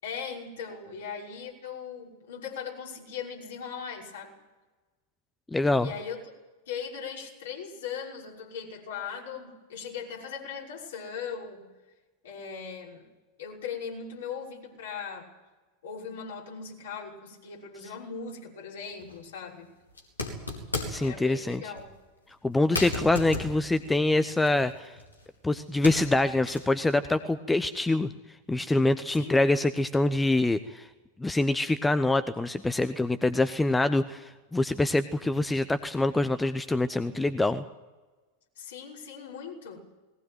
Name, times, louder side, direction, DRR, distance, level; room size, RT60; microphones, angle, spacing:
voice 1, 0.0-4.4 5.8-6.2 6.7-11.7 12.2-13.1 13.4-15.3 15.8-19.7 21.0-21.9 29.1-29.4 38.6-39.8, left 6 dB, 60° left, -2 dB, 6.0 m, -39 dB
voice 2, 5.5-5.9 20.9-21.7 22.4-25.0 25.4-28.1 28.5-30.9 31.2-37.6, left 2 dB, 10° left, 12 dB, 0.9 m, -25 dB
sound 1, 19.0-19.2 19.9-21.1 21.7-21.9 22.3-22.4 22.7-25.3 25.6-26.8, left 2 dB, 80° left, 4.3 m, -35 dB
20.5 x 18.5 x 9.3 m, 1.2 s
figure-of-eight pair, 90°, 0 cm